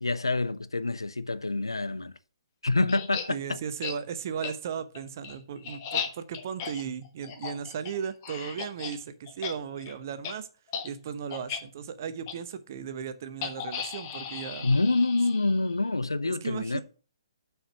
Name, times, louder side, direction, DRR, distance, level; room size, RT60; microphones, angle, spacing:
voice 1, 0.0-2.1 2.6-3.6 14.6-16.8, left 3 dB, 75° left, 0.5 m, -27 dB
sound 1, 2.9-3.3 3.8-4.0 4.4-4.5 4.9-9.0 9.3-9.5 9.8-9.9 10.2-10.3 10.7-10.9 11.3-11.6 12.3-12.4 13.4-15.8, left 7 dB, 30° left, 1.2 m, -36 dB
voice 2, 3.3-10.5 10.8-14.7 16.3-16.8, right 7 dB, 40° right, 0.8 m, -36 dB
6.3 x 4.7 x 6.4 m
figure-of-eight pair, 130°, 2 cm